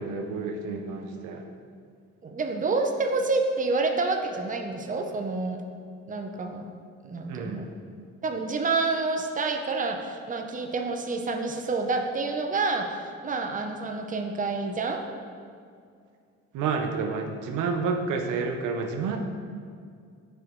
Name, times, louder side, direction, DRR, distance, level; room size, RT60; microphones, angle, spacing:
voice 1, 0.0-1.4 7.3-7.7 16.5-19.2, right 4 dB, 85° right, 4 dB, 0.7 m, -30 dB
voice 2, 2.2-5.6 6.1-6.7 7.0-7.7 8.2-15.0, right 3 dB, 25° right, 4 dB, 0.7 m, -28 dB
9.2 x 5.1 x 3.1 m, 2.2 s
cardioid pair, 90°, 30 cm